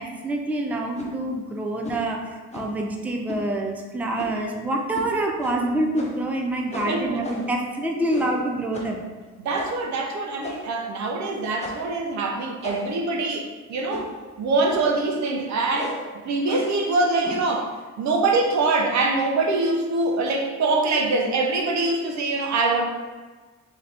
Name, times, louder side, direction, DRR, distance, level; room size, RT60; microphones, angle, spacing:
voice 1, 0.0-9.0, right 1 dB, 5° right, 1 dB, 0.4 m, -26 dB
sound 1, 0.9-1.1 1.8-2.1 2.5-2.8 3.3-3.5 4.2-4.5 4.9-5.1 5.4-5.6 5.9-6.3 6.7-7.6 8.1-8.4 8.7-9.0 9.5-9.9 10.4-10.8 11.6-11.9 12.6-13.1 13.9-14.2 14.7-15.0 15.7-16.1 16.4-16.8 17.2-17.5, left 2 dB, 20° left, 0.7 m, -36 dB
voice 2, 6.7-7.2 9.4-14.1 14.4-16.0 16.2-17.7 18.0-22.9, right 3 dB, 65° right, 2 dB, 0.7 m, -24 dB
3.8 x 2.8 x 3.4 m, 1.3 s
cardioid pair, 90°, 30 cm